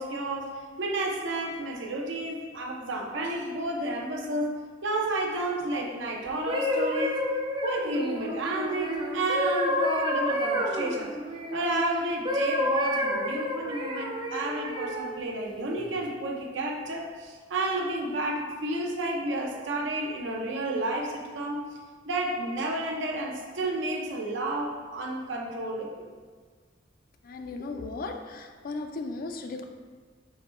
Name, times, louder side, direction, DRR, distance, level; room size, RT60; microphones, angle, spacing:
voice 1, 0.0-4.5 4.8-7.2 7.6-11.1 11.5-21.7 22.0-26.1, right 1 dB, 85° right, 0 dB, 0.7 m, -31 dB
sound 1, 6.3-11.8 12.2-15.1 15.8-16.0, equal, 25° right, 0.4 m, -29 dB
voice 2, 27.2-29.7, left 3 dB, 50° left, 5 dB, 0.4 m, -36 dB
4.7 x 2.2 x 4.3 m, 1.5 s
head